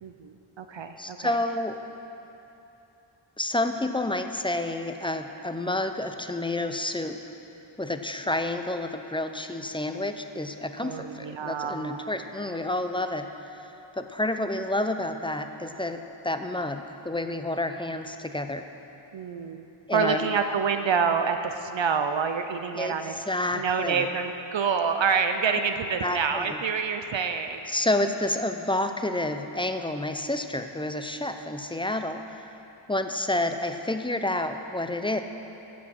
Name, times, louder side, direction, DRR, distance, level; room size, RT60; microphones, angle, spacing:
voice 1, 0.0-1.3 10.8-12.0 19.1-19.6 19.9-23.2 23.5-27.6, right 6 dB, 65° right, 7 dB, 0.7 m, -27 dB
voice 2, 1.0-1.8 3.4-7.2 7.8-18.6 19.9-20.3 22.7-24.1 26.0-26.6 27.7-32.4 32.9-35.2, left 1 dB, 10° left, 7 dB, 0.5 m, -29 dB
15.0 x 6.3 x 6.0 m, 2.9 s
wide cardioid pair, 85°, 49 cm